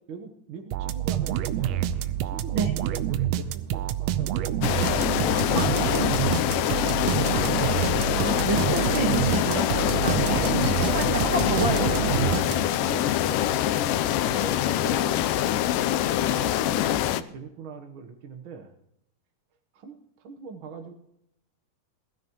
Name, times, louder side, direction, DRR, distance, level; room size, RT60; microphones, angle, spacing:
voice 1, 0.1-1.9 2.2-7.3 10.0-11.2 12.5-13.6 14.2-15.2 16.2-18.7 19.7-20.9, right 5 dB, 70° right, 5 dB, 1.2 m, -42 dB
sound 1, 0.7-12.9, right 11 dB, 90° right, 1.4 m, -27 dB
sound 2, 4.6-17.2, left 12 dB, 85° left, 2.2 m, -24 dB
voice 2, 5.5-6.1 8.1-12.2, right 3 dB, 50° right, 1 dB, 1.7 m, -30 dB
20.0 x 13.0 x 3.0 m, 0.77 s
omnidirectional pair, 3.7 m